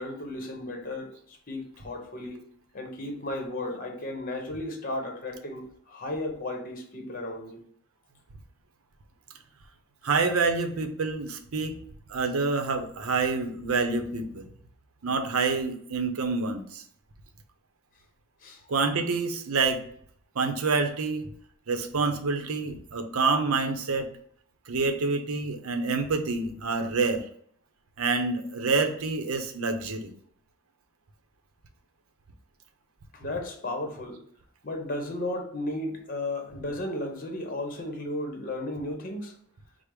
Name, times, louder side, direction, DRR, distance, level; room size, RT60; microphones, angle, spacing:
voice 1, 0.0-2.4 2.7-7.6 18.4-18.7 33.1-34.2 34.6-39.3, left 1 dB, 40° left, 3 dB, 0.9 m, -34 dB
voice 2, 10.0-11.8 12.1-14.5 15.0-16.8 18.7-19.8 20.3-21.3 21.7-24.1 24.7-27.2 28.0-30.1, right 4 dB, 85° right, 6 dB, 0.6 m, -27 dB
5.0 x 2.0 x 4.7 m, 0.62 s
head